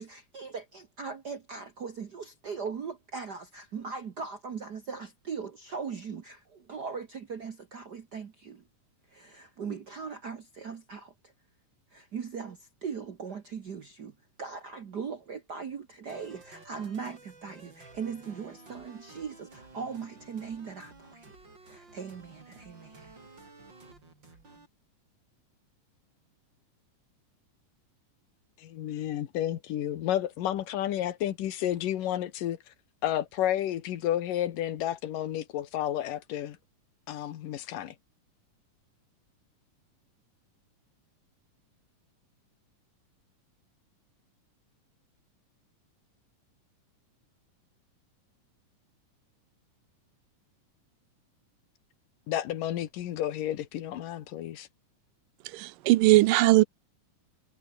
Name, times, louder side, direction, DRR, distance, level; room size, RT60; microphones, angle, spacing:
voice 1, 0.0-8.6 9.1-11.3 11.9-21.4 21.6-23.1, right 5 dB, 60° right, 1.0 m, -39 dB
sound 1, 16.1-24.7, right 3 dB, 35° right, 5.8 m, -52 dB
voice 2, 28.6-32.7 33.0-36.6 37.1-38.0 52.3-54.7, left 12 dB, 90° left, 3.1 m, -31 dB
voice 3, 55.5-56.6, right 18 dB, 85° right, 2.4 m, -20 dB
omnidirectional pair, 3.8 m